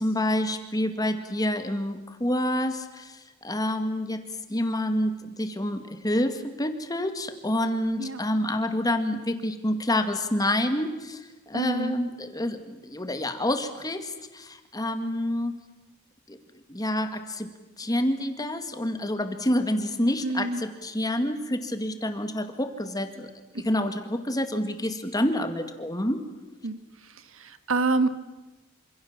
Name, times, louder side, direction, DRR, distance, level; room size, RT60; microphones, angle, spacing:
voice 1, 0.0-4.2 4.5-15.5 16.3-16.4 16.7-17.5 17.8-23.3 23.6-26.2, left 1 dB, 15° left, 8 dB, 2.0 m, -28 dB
voice 2, 11.5-11.9 20.2-20.6 26.6-26.8 27.3-28.1, right 3 dB, 60° right, 11 dB, 1.7 m, -26 dB
27.5 x 26.5 x 7.4 m, 1.1 s
head